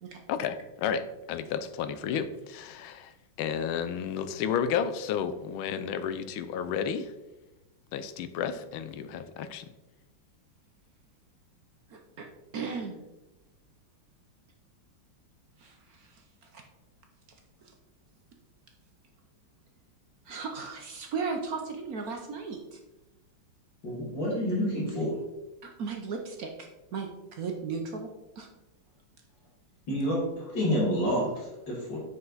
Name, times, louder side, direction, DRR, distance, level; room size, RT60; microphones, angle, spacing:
voice 1, 0.3-3.1 3.4-7.1 7.9-9.6, left 7 dB, 90° left, 11 dB, 1.5 m, -32 dB
voice 2, 11.9-12.3 12.5-13.0 15.6-16.6 17.6-17.7 20.2-22.8 25.6-28.1 28.4-28.5, right 5 dB, 60° right, 3 dB, 1.1 m, -36 dB
voice 3, 23.8-25.2 29.9-32.0, equal, 60° left, -4 dB, 2.7 m, -29 dB
7.7 x 5.7 x 3.9 m, 1.0 s
omnidirectional pair, 2.2 m